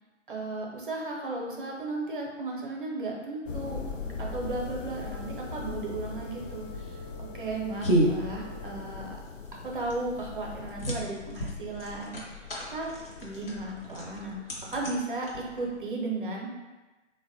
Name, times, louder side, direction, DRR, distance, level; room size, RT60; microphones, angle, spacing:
voice 1, 0.3-3.8 4.2-6.9 7.3-9.2 9.6-12.9 13.2-14.4 14.7-16.5, right 2 dB, 45° right, -1 dB, 0.6 m, -35 dB
sound 1, 3.5-14.4, left 4 dB, 80° left, 0.5 m, -41 dB
Wind instrument woodwind instrument, 4.9-9.3, right 2 dB, 20° left, 0.4 m, -50 dB
sound 2, 6.3-15.9, right 1 dB, 50° left, 0.7 m, -33 dB
3.5 x 2.1 x 2.6 m, 1.2 s
figure-of-eight pair, 145°, 38 cm